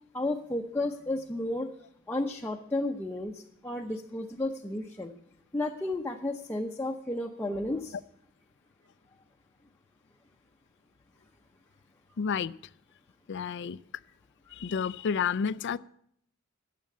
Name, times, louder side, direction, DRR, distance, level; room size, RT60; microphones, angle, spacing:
voice 1, 0.1-1.7 2.1-5.1 5.5-7.9, left 2 dB, 10° left, 1 dB, 0.7 m, -32 dB
voice 2, 12.2-12.5 13.3-13.8 14.5-15.8, left 6 dB, 55° left, 17 dB, 0.4 m, -30 dB
12.5 x 7.6 x 8.5 m, 0.69 s
head